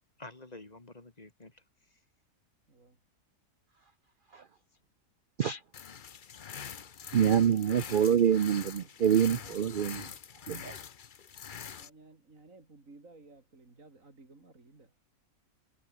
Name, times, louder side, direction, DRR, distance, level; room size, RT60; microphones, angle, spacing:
voice 1, 0.2-2.0, left 2 dB, 25° left, 2.1 m, -50 dB
voice 2, 2.7-3.0 9.3-10.2 11.8-15.0, right 3 dB, 55° right, 4.1 m, -56 dB
sound 1, 5.7-11.9, left 7 dB, 45° left, 0.7 m, -44 dB
voice 3, 7.1-10.0 10.5-10.8, right 8 dB, 90° right, 0.4 m, -26 dB
omnidirectional pair, 1.7 m